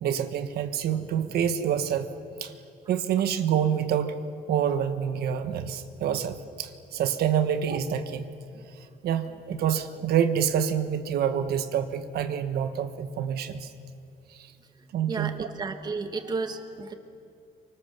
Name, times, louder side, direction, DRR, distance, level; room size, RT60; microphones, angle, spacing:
voice 1, 0.0-2.1 2.4-2.5 2.9-4.2 4.5-8.3 9.0-13.7 14.3-14.5 14.9-15.5, right 9 dB, 90° right, 8 dB, 1.4 m, -27 dB
voice 2, 15.1-16.9, right 4 dB, 25° right, 7 dB, 1.4 m, -32 dB
28.5 x 25.0 x 6.8 m, 2.5 s
cardioid pair, 180°, 16 cm